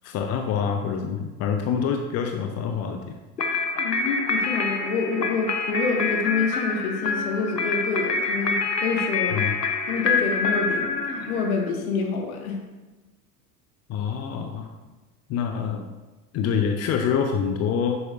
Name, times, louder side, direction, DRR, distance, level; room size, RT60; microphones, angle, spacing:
voice 1, 0.0-3.2 9.3-9.5 13.9-14.8 15.3-15.9 16.3-18.0, left 7 dB, 30° left, 5 dB, 0.8 m, -26 dB
sound 1, 3.4-11.7, left 4 dB, 85° left, 1.0 m, -26 dB
voice 2, 3.8-9.5 9.9-12.6, left 4 dB, 60° left, 2 dB, 1.9 m, -27 dB
11.0 x 8.4 x 2.6 m, 1.2 s
figure-of-eight pair, 80°, 47 cm